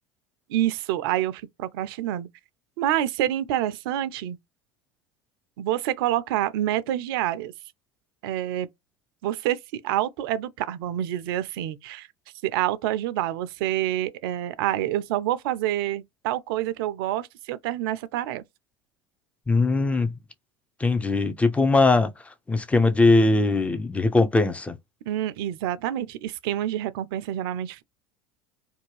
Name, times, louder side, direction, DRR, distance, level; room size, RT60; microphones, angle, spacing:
voice 1, 0.5-2.3 2.8-4.4 5.6-7.5 8.2-8.7 9.2-12.1 12.4-18.4 25.1-27.8, right 13 dB, 65° right, 0.4 m, -27 dB
voice 2, 19.5-20.2 20.8-24.8, left 3 dB, 10° left, 0.5 m, -21 dB
2.6 x 2.2 x 3.1 m
hypercardioid pair, 75°, 13 cm